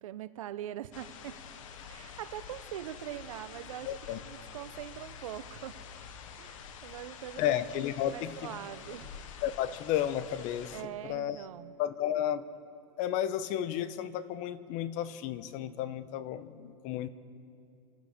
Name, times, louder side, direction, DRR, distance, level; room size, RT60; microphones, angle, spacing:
voice 1, 0.0-1.4 1.9-5.8 6.4-7.6 8.1-9.1 10.7-11.7, right 12 dB, 85° right, 13 dB, 0.8 m, -42 dB
sound 1, 0.9-10.8, left 7 dB, 75° left, 1.2 m, -47 dB
voice 2, 3.8-4.2 7.4-8.6 9.4-10.8 11.0-11.4 11.8-12.4 13.0-17.1, left 11 dB, 50° left, 14 dB, 0.9 m, -32 dB
28.0 x 9.6 x 5.1 m, 2.6 s
supercardioid pair, 130°, 17 cm